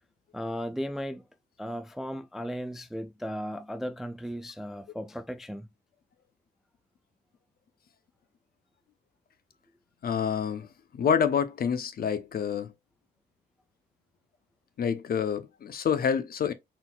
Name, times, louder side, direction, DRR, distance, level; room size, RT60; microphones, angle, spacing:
voice 1, 0.3-1.2 1.6-5.7, equal, ahead, 0.3 m, -36 dB
voice 2, 10.0-10.7 10.9-12.7 14.8-16.5, left 7 dB, 50° left, 0.8 m, -27 dB
4.4 x 3.7 x 2.4 m
cardioid pair, 90°, 20 cm